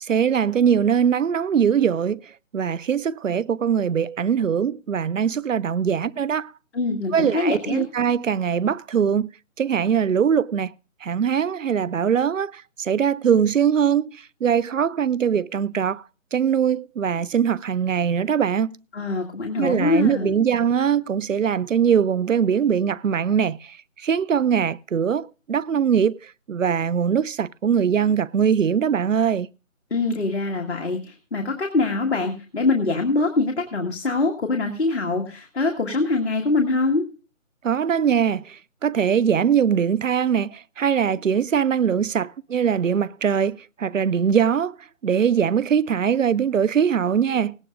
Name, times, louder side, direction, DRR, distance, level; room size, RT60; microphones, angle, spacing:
voice 1, 0.1-2.2 2.5-6.5 7.1-9.3 9.6-10.7 11.0-16.0 16.3-18.8 19.6-23.6 24.0-26.2 26.5-29.5 37.6-38.5 38.8-44.7 45.0-47.6, right 7 dB, 70° right, 0.5 m, -21 dB
voice 2, 6.7-7.8 18.9-20.3 29.9-37.0, left 3 dB, 50° left, 1.8 m, -23 dB
18.0 x 17.0 x 2.5 m
figure-of-eight pair, 175°, 41 cm